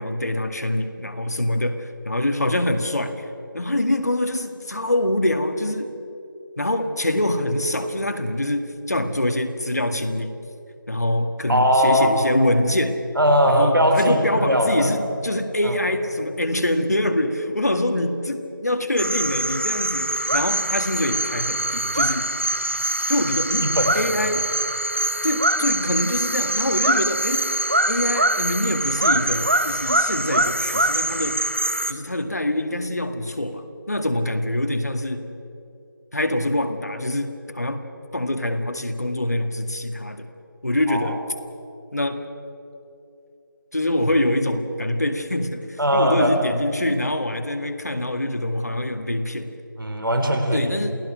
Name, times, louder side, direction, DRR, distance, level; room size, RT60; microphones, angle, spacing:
voice 1, 0.0-3.3 3.5-5.9 6.6-10.4 10.9-13.0 13.5-22.3 23.1-23.7 23.9-24.5 25.2-31.5 31.9-35.3 36.1-37.8 38.1-40.3 40.6-41.2 41.9-42.2 43.7-49.5 50.5-50.9, left 1 dB, 50° left, 6 dB, 1.9 m, -24 dB
voice 2, 11.5-12.1 13.1-14.9 15.6-15.8 23.6-23.9 40.9-41.2 45.8-46.3 49.8-50.7, equal, 80° right, 4 dB, 4.8 m, -20 dB
sound 1, 19.0-31.9, right 1 dB, 35° right, 0.8 m, -23 dB
28.5 x 18.5 x 6.4 m, 2.7 s
figure-of-eight pair, 180°, 11 cm